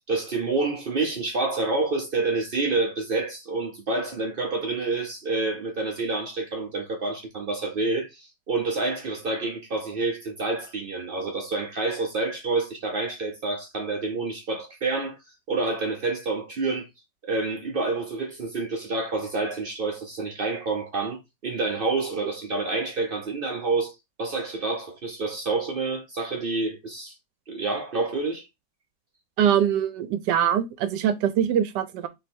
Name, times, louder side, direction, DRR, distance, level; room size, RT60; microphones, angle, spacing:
voice 1, 0.0-15.2 15.5-16.9 17.2-23.9 24.2-27.2 27.5-28.4, right 3 dB, 65° right, 0.5 m, -28 dB
voice 2, 29.4-32.1, right 9 dB, 85° right, 1.3 m, -23 dB
3.3 x 3.2 x 4.3 m
omnidirectional pair, 1.9 m